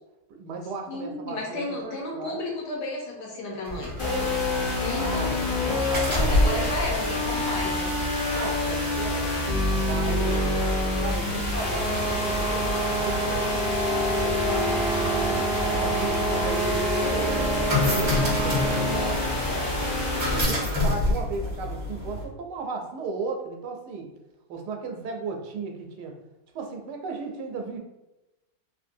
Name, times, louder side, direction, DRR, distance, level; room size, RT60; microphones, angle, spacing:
voice 1, 0.3-2.4 4.0-4.3 4.9-6.4 8.3-9.3 9.8-10.5 11.0-12.6 13.0-14.7 15.1-17.5 17.8-20.0 20.3-24.1 24.5-26.1 26.5-27.8, right 4 dB, 85° right, 3 dB, 1.2 m, -35 dB
voice 2, 0.9-3.9 4.8-7.9, left 2 dB, 80° left, -2 dB, 1.4 m, -33 dB
sound 1, 3.7-22.2, left 2 dB, 25° right, 0.9 m, -30 dB
sound 2, 4.0-20.4, left 2 dB, 40° left, 0.8 m, -27 dB
sound 3, 11.6-19.3, right 5 dB, 65° right, 1.1 m, -30 dB
3.1 x 2.6 x 2.5 m, 0.99 s
omnidirectional pair, 1.7 m